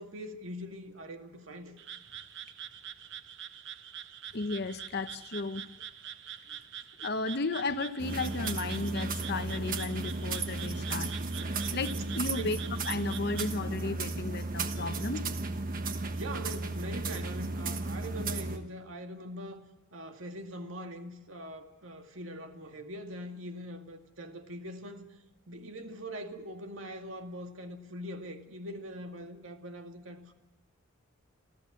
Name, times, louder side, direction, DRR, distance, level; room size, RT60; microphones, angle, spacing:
voice 1, 0.0-1.7 12.4-12.6 16.1-19.6 19.9-25.1 25.5-30.3, equal, 90° right, 2.2 m, -42 dB
Frog, 1.8-13.5, right 9 dB, 65° right, 1.0 m, -45 dB
voice 2, 4.3-5.6 7.0-11.2 11.7-12.6 12.9-15.3, left 3 dB, 55° left, 1.0 m, -34 dB
sound 1, 8.0-18.6, right 3 dB, 45° right, 1.3 m, -34 dB
27.0 x 14.5 x 8.5 m
head